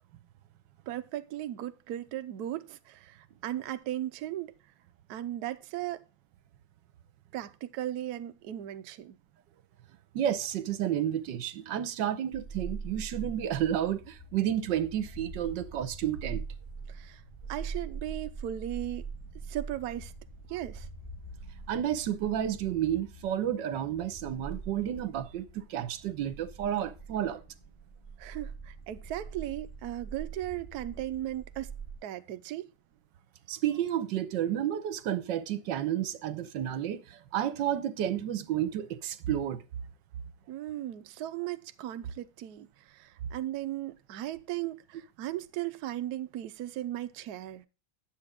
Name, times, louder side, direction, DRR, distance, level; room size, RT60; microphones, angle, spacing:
voice 1, 0.9-4.5 5.1-6.0 7.3-9.2 16.9-17.2 17.5-19.0 19.5-20.1 20.5-20.9 28.2-31.7 32.0-32.7 40.5-47.6, right 13 dB, 85° right, 0.8 m, -37 dB
voice 2, 10.1-16.4 21.7-27.4 33.5-39.6, right 10 dB, 65° right, 1.3 m, -31 dB
sound 1, 12.3-32.0, right 4 dB, 15° left, 3.2 m, -43 dB
10.0 x 7.7 x 3.6 m
omnidirectional pair, 2.3 m